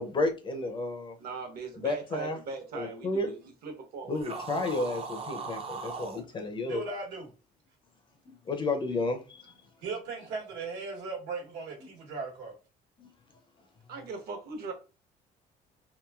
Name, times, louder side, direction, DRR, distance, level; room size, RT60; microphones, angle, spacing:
voice 1, 0.0-1.2 1.7-2.4 2.7-3.3 4.1-6.8 8.3-9.5 11.8-11.9 13.0-13.1, left 2 dB, 30° left, 0.5 m, -32 dB
voice 2, 1.2-4.6 6.2-6.3 13.9-14.7, right 4 dB, 65° right, 0.9 m, -40 dB
sound 1, 4.1-6.2, right 4 dB, 35° right, 0.5 m, -38 dB
voice 3, 6.7-7.3 9.8-12.5, right 4 dB, 85° right, 1.2 m, -37 dB
2.9 x 2.6 x 2.3 m
cardioid pair, 110°, 17 cm